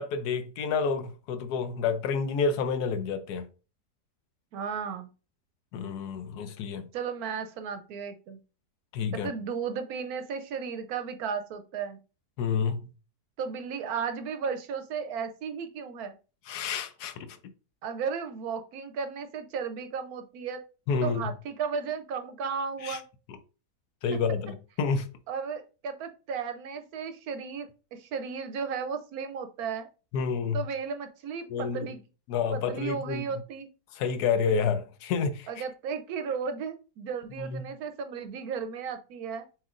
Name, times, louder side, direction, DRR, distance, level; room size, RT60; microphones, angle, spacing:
voice 1, 0.0-3.5 5.7-6.9 8.9-9.3 12.4-12.8 16.5-17.3 20.9-21.3 22.8-23.0 24.0-25.1 30.1-30.6 31.5-31.9 32.3-33.2 33.9-35.5 37.4-37.6, left 5 dB, 75° left, 1.1 m, -29 dB
voice 2, 4.5-5.1 6.9-8.4 9.1-12.0 13.4-16.1 17.8-20.6 21.0-23.0 25.3-29.9 30.5-32.0 32.5-33.7 35.5-39.5, right 6 dB, 70° right, 1.0 m, -34 dB
7.2 x 2.8 x 2.4 m
omnidirectional pair, 1.8 m